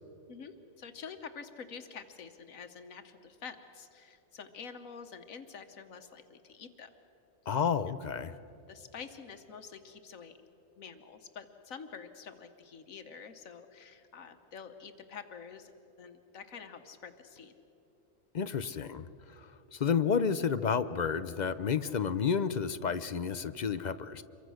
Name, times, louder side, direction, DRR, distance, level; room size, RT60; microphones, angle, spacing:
voice 1, 0.3-6.9 8.7-10.4 10.8-15.7 16.0-17.5, left 6 dB, 85° left, 7 dB, 1.5 m, -47 dB
voice 2, 7.5-8.3 18.3-19.1 19.7-24.2, left 6 dB, 45° left, 12 dB, 0.6 m, -30 dB
27.0 x 23.5 x 6.3 m, 2.9 s
omnidirectional pair, 1.4 m